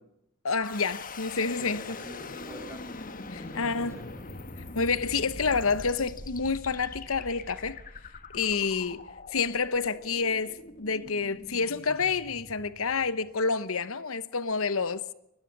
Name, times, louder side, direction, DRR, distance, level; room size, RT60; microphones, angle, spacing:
voice 1, 0.4-2.0 3.3-3.9 4.7-7.8 8.3-9.0 9.3-15.0, left 4 dB, 65° left, 1.0 m, -28 dB
sound 1, 0.6-13.6, left 3 dB, 40° left, 1.5 m, -43 dB
voice 2, 1.6-2.8 3.4-4.2, right 1 dB, 10° right, 6.4 m, -46 dB
24.5 x 20.5 x 6.7 m
head